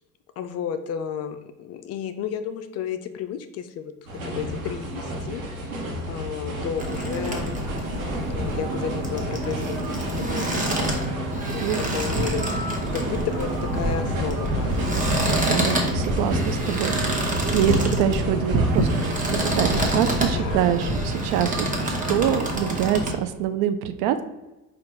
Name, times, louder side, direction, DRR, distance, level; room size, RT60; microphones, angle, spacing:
voice 1, 0.4-3.9 4.2-5.6 6.1-7.6 8.3-11.6 11.9-15.2 20.3-20.6, left 8 dB, 40° left, 9 dB, 0.4 m, -33 dB
sound 1, 4.1-20.9, equal, 85° right, 1.1 m, -32 dB
sound 2, 6.8-23.1, right 1 dB, 20° right, 1.1 m, -26 dB
voice 2, 15.5-24.2, right 10 dB, 55° right, 10 dB, 0.5 m, -25 dB
4.3 x 2.5 x 4.7 m, 1.0 s
hypercardioid pair, 70°, 42 cm